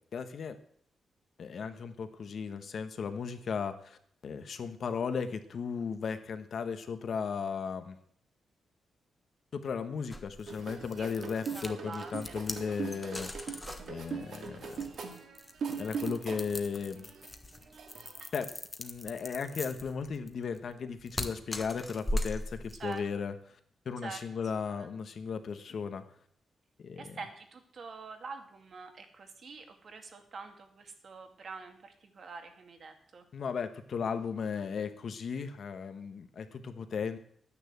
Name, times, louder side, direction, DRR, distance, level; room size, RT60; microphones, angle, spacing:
voice 1, 0.1-0.6 1.4-8.0 9.5-13.5 13.9-14.8 15.8-17.1 18.3-18.5 18.8-23.3 23.8-26.0 26.8-27.2 33.3-37.2, left 6 dB, 55° left, 8 dB, 1.4 m, -36 dB
sound 1, 10.1-23.0, left 1 dB, 15° left, 1.2 m, -40 dB
sound 2, 10.5-16.6 17.0-18.3, right 6 dB, 65° right, 2.2 m, -40 dB
voice 2, 11.5-12.4 22.7-23.1 24.0-24.3 24.7-24.9 27.0-33.2, right 4 dB, 50° right, 5 dB, 2.2 m, -45 dB
11.5 x 9.9 x 8.2 m, 0.63 s
wide cardioid pair, 145°, 0 cm